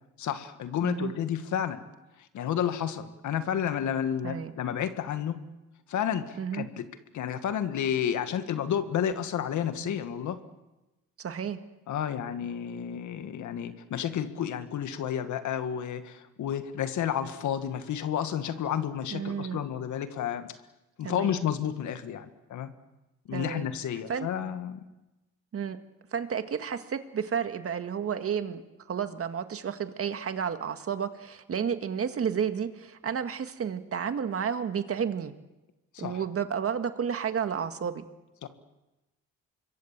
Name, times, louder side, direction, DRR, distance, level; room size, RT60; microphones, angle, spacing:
voice 1, 0.2-1.8 2.3-5.4 5.9-6.9 7.1-10.4 11.9-20.5 21.0-22.7 23.3-24.8 35.9-36.2 38.4-38.5, left 9 dB, 75° left, 9 dB, 1.9 m, -31 dB
voice 2, 11.2-11.6 19.1-19.6 21.0-21.4 23.3-23.7 24.1-24.3 25.5-25.8 26.1-28.6 28.9-35.3 36.0-38.1, right 7 dB, 50° right, 9 dB, 1.9 m, -31 dB
26.0 x 22.0 x 7.5 m, 1.0 s
cardioid pair, 90°, 30 cm